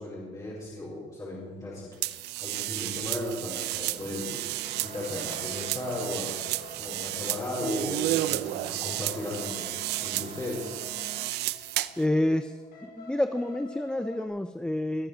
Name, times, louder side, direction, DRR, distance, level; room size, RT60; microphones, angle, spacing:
voice 1, 0.0-1.9 2.4-4.4 4.8-6.3 6.8-9.7 10.0-10.7, left 1 dB, 20° left, -6 dB, 4.4 m, -36 dB
sound 1, 2.0-12.0, right 16 dB, 80° right, 0.5 m, -32 dB
sound 2, 3.4-11.3, right 6 dB, 40° right, 0.9 m, -47 dB
sound 3, 4.7-14.3, left 2 dB, 65° left, 5.0 m, -49 dB
voice 2, 12.0-12.5 12.8-15.1, left 1 dB, 5° left, 10 dB, 0.5 m, -28 dB
20.5 x 7.6 x 6.4 m, 1.4 s
cardioid pair, 110°, 17 cm